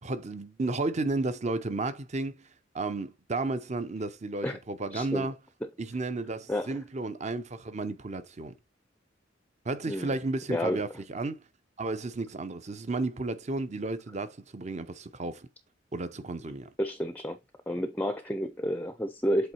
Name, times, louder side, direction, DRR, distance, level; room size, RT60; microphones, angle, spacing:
voice 1, 0.0-2.5 2.7-5.3 5.8-8.5 9.6-11.4 11.8-15.5 15.9-16.7, right 2 dB, 40° right, 0.7 m, -33 dB
voice 2, 4.9-5.3 6.5-6.7 9.9-10.1 10.5-10.8 16.8-17.4 17.7-19.5, equal, 10° left, 0.5 m, -30 dB
7.9 x 3.1 x 4.3 m
head